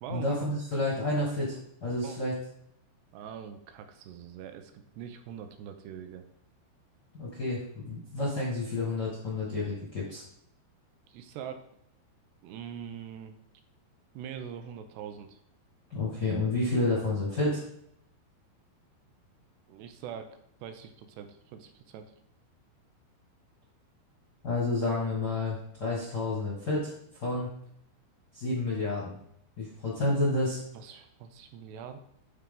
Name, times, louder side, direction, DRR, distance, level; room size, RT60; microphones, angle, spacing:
voice 1, 0.1-2.3 7.1-10.2 15.9-17.6 24.4-27.5 28.3-29.2 29.6-30.6, left 2 dB, 75° left, -5 dB, 0.9 m, -30 dB
voice 2, 3.1-6.2 11.1-11.6 12.4-13.4 14.1-15.4 19.7-22.1 30.7-32.0, right 8 dB, 80° right, 8 dB, 2.6 m, -43 dB
12.0 x 4.5 x 3.8 m, 0.71 s
omnidirectional pair, 5.1 m